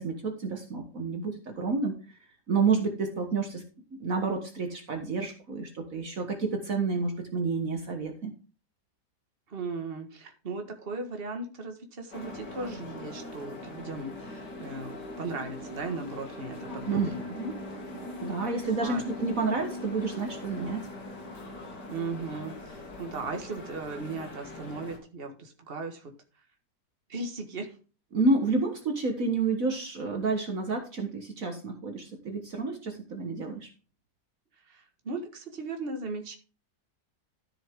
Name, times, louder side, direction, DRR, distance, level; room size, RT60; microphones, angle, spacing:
voice 1, 0.0-2.0 2.5-3.6 3.9-8.3 16.9-17.6 18.2-20.8 28.1-33.7, right 4 dB, 55° right, 4 dB, 1.8 m, -29 dB
voice 2, 9.5-17.2 18.8-19.0 21.9-26.1 27.1-27.7 34.7-36.4, right 3 dB, 35° right, 4 dB, 1.8 m, -37 dB
sound 1, 12.1-25.0, left 2 dB, 80° left, 3.1 m, -41 dB
13.0 x 7.0 x 3.7 m, 0.34 s
omnidirectional pair, 1.8 m